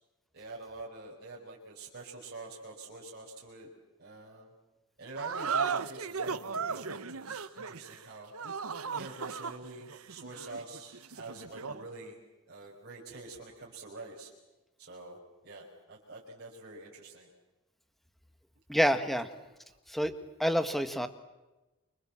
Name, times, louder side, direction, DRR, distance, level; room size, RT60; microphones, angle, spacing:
voice 1, 0.3-3.7 4.0-4.5 5.0-8.3 9.0-12.2 12.5-14.3 14.8-17.3 19.7-19.8, right 2 dB, 50° right, -4 dB, 5.5 m, -46 dB
sound 1, 5.2-11.9, right 5 dB, 75° right, 1.1 m, -36 dB
voice 2, 18.7-19.3 19.9-20.1 20.4-21.1, equal, ahead, 10 dB, 1.6 m, -27 dB
28.5 x 25.0 x 7.5 m, 1.1 s
head